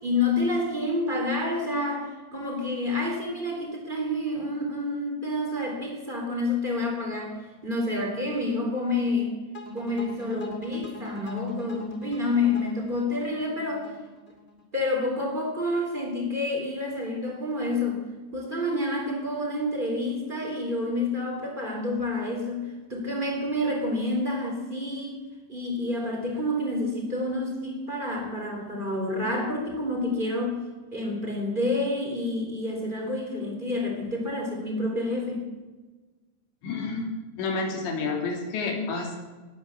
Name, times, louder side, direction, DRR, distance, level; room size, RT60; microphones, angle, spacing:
voice 1, 0.0-7.4 7.6-9.3 9.7-13.8 14.7-18.0 18.3-25.2 25.5-30.6 30.9-35.5, left 2 dB, 10° right, 0 dB, 3.4 m, -28 dB
sound 1, 9.5-14.6, left 2 dB, 25° left, 1.5 m, -41 dB
voice 2, 36.6-37.1 37.4-39.2, left 4 dB, 80° left, 2 dB, 5.1 m, -29 dB
19.5 x 10.0 x 7.3 m, 1.3 s
omnidirectional pair, 5.0 m